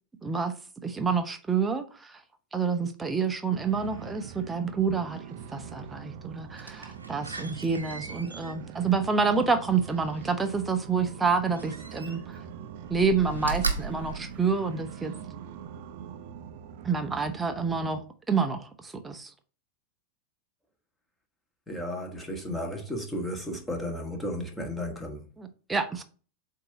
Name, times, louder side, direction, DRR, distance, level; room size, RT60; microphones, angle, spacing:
voice 1, 0.2-0.5 0.8-2.2 2.5-5.2 5.5-12.4 12.9-15.1 16.8-19.3 25.4-26.0, right 5 dB, 10° right, 0.9 m, -28 dB
sound 1, 3.5-18.0, right 8 dB, 50° right, 0.6 m, -43 dB
Slam, 6.6-10.4 11.5-12.5 12.8-15.1 15.6-15.7, right 4 dB, 80° right, 0.9 m, -37 dB
voice 2, 21.7-25.3, equal, 5° left, 1.6 m, -34 dB
7.9 x 2.8 x 5.0 m
figure-of-eight pair, 90°, 0 cm